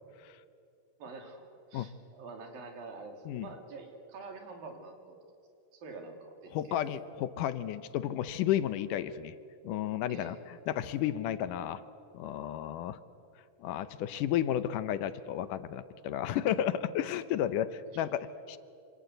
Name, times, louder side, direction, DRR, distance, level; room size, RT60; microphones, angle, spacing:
voice 1, 1.0-5.2 5.7-6.8 10.1-10.4, right 3 dB, 85° right, 3 dB, 4.9 m, -46 dB
voice 2, 6.5-9.3 9.6-10.4 10.7-11.8 12.1-13.0 13.6-18.6, left 11 dB, 75° left, 13 dB, 2.3 m, -32 dB
26.5 x 26.5 x 8.0 m, 2.4 s
omnidirectional pair, 3.9 m